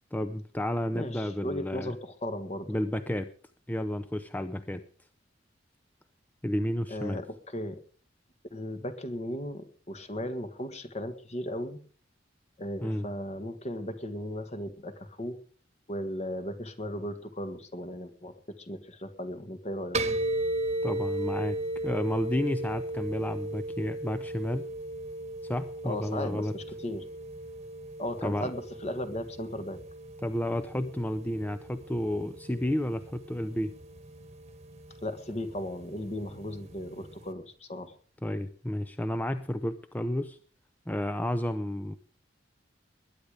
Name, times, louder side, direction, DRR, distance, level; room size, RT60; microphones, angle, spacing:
voice 1, 0.1-2.0 2.7-3.3 3.7-4.8 6.4-7.2 12.8-13.1 20.8-21.6 21.8-24.7 25.5-26.5 28.2-28.5 30.2-33.7 38.2-40.4 40.9-42.0, left 1 dB, 10° left, 9 dB, 0.6 m, -31 dB
voice 2, 0.9-2.8 6.9-7.8 8.5-11.8 12.6-15.4 15.9-20.0 25.8-27.0 28.0-29.8 35.0-37.9, left 1 dB, 35° left, 10 dB, 1.7 m, -36 dB
sound 1, 19.9-37.3, right 1 dB, 35° right, 1.3 m, -37 dB
20.5 x 10.5 x 5.0 m, 0.43 s
head